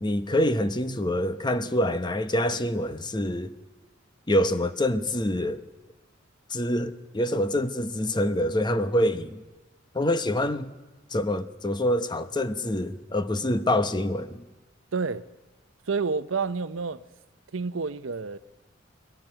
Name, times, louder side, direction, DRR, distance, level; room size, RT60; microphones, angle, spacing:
voice 1, 0.0-3.5 4.3-5.6 6.5-9.4 9.9-10.7 11.1-14.4, left 1 dB, 20° left, 0.9 m, -26 dB
voice 2, 14.9-15.3 15.9-17.0 17.5-18.4, right 4 dB, 85° right, 0.7 m, -29 dB
22.0 x 18.0 x 9.0 m
head